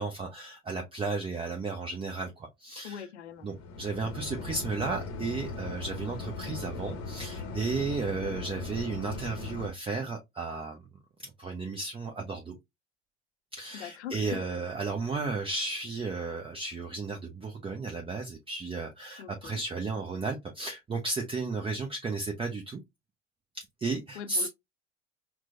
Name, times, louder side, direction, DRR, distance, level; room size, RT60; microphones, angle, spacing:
voice 1, 0.0-3.0 3.4-10.8 11.2-12.6 13.5-22.8 23.5-24.5, right 3 dB, 15° right, 0.6 m, -34 dB
voice 2, 2.8-3.5 13.7-14.4 19.2-19.6 24.2-24.5, left 9 dB, 80° left, 0.6 m, -41 dB
sound 1, 3.4-9.7, left 3 dB, 40° left, 0.9 m, -38 dB
4.5 x 2.2 x 2.5 m
figure-of-eight pair, 75°, 34 cm